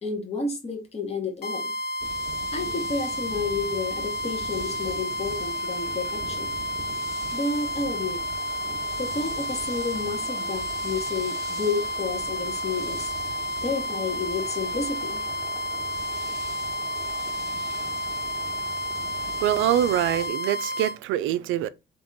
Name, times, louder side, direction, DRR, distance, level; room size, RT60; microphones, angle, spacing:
voice 1, 0.0-1.7 2.5-6.5 7.3-8.2 9.0-13.1 13.6-15.2, left 4 dB, 30° left, 1.3 m, -31 dB
sound 1, 1.4-21.0, equal, 55° left, 1.3 m, -31 dB
sound 2, 2.0-20.3, right 3 dB, 15° right, 1.1 m, -41 dB
voice 2, 19.4-21.7, right 12 dB, 90° right, 0.4 m, -24 dB
3.5 x 3.0 x 3.9 m
cardioid pair, 90°, 20 cm